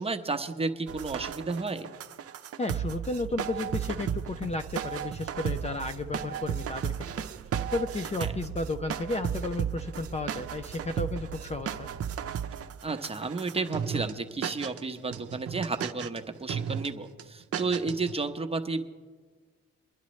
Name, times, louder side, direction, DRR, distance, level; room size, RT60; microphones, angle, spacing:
voice 1, 0.0-1.9 8.2-8.3 12.8-18.9, right 3 dB, 20° right, 5 dB, 0.9 m, -32 dB
sound 1, 0.9-14.1 14.4-14.8 15.1-16.2 16.5-16.9 17.2-17.3 17.5-18.2, right 8 dB, 50° right, 0.7 m, -34 dB
voice 2, 2.6-7.3 7.7-11.9, left 2 dB, 20° left, 7 dB, 0.5 m, -33 dB
23.0 x 10.5 x 3.2 m, 1.5 s
cardioid pair, 90°, 30 cm